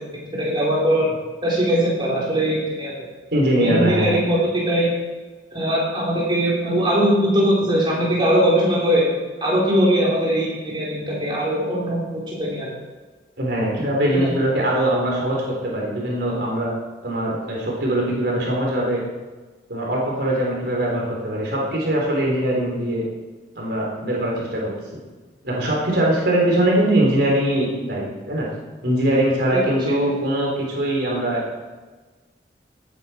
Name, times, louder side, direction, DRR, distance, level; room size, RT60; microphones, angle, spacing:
voice 1, 0.1-1.1 1.4-2.9 3.5-4.9 5.5-9.0 9.4-12.7 14.1-14.3, right 1 dB, 25° right, -6 dB, 3.7 m, -20 dB
voice 2, 3.3-4.1 13.4-16.7 17.0-19.0 19.7-23.0 23.6-24.7 25.4-28.5 28.8-31.4, right 1 dB, 65° right, -3 dB, 3.8 m, -21 dB
17.0 x 9.4 x 4.5 m, 1.3 s
head